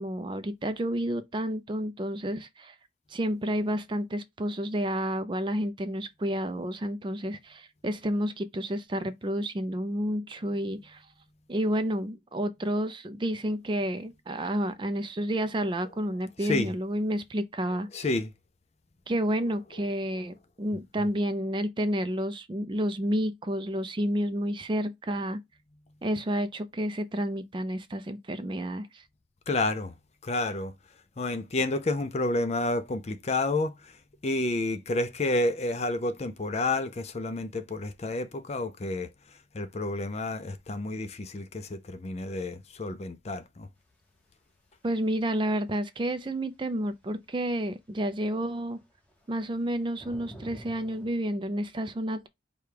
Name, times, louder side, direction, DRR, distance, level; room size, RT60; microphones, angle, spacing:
voice 1, 0.0-2.7 3.1-11.0 11.5-17.9 19.1-25.4 26.0-29.0 44.8-48.8 49.3-52.3, equal, 25° right, 0.4 m, -30 dB
voice 2, 16.4-16.7 17.9-18.3 29.5-29.9 30.2-30.7 31.2-43.7, left 2 dB, 35° left, 0.4 m, -30 dB
sound 1, 48.5-51.1, right 1 dB, 5° left, 1.0 m, -48 dB
5.0 x 2.3 x 4.6 m
head